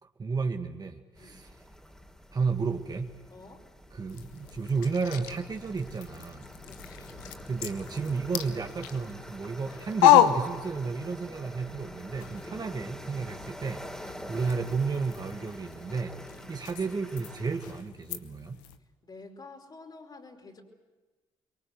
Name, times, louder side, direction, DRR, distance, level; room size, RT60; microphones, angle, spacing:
voice 1, 0.0-1.5 2.3-3.1 3.9-6.5 7.5-16.2 16.5-18.6, right 4 dB, 40° right, 5 dB, 2.0 m, -32 dB
sound 1, 1.2-17.8, equal, 5° left, 3.5 m, -46 dB
voice 2, 3.3-3.7 6.6-7.1 12.4-12.6 13.2-13.4 14.0-14.3 16.2-16.4 19.0-20.6, left 3 dB, 45° left, 2 dB, 5.1 m, -50 dB
sound 2, 4.1-11.3 11.6-18.8, left 11 dB, 85° left, 0.9 m, -31 dB
25.0 x 23.0 x 7.9 m, 1.2 s
hypercardioid pair, 45°, 10 cm